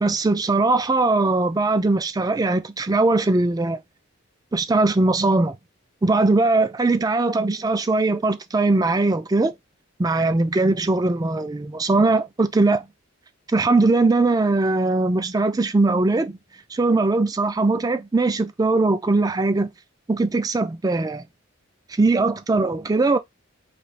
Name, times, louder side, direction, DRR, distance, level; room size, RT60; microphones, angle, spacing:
voice 1, 0.0-3.8 4.5-5.6 6.0-9.5 10.0-12.9 13.5-16.4 16.7-19.7 20.1-21.2 22.0-23.2, right 3 dB, 20° right, 0.3 m, -20 dB
3.2 x 2.7 x 4.0 m
head